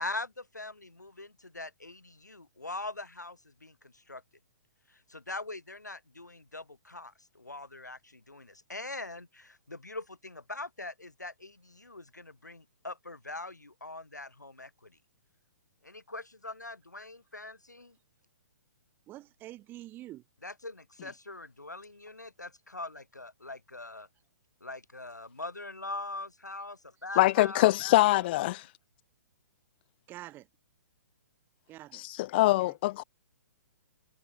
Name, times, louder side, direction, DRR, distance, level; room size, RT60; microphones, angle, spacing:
voice 1, 0.0-4.2 4.9-15.0 15.8-18.0 20.4-24.1 24.6-27.8 28.2-28.6, left 2 dB, 85° left, 2.8 m, -42 dB
voice 2, 19.1-20.2 30.1-30.5 31.7-32.0 32.3-32.7, right 15 dB, 20° right, 1.5 m, -46 dB
voice 3, 27.2-28.6 31.9-33.0, left 18 dB, 35° left, 0.5 m, -24 dB
figure-of-eight pair, 120°, 9 cm